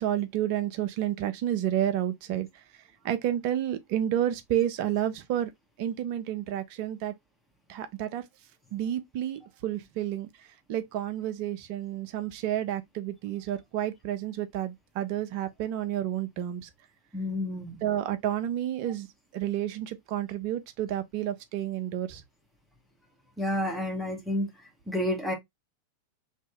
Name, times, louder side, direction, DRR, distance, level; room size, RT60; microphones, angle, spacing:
voice 1, 0.0-2.5 3.0-5.5 5.8-7.1 7.7-8.2 8.7-10.3 10.7-16.7 17.8-19.1 19.3-22.2, right 11 dB, 45° right, 0.6 m, -30 dB
voice 2, 17.1-17.7 23.4-24.5 24.9-25.3, left 1 dB, ahead, 1.1 m, -29 dB
3.0 x 2.7 x 3.4 m
figure-of-eight pair, 90°, 0 cm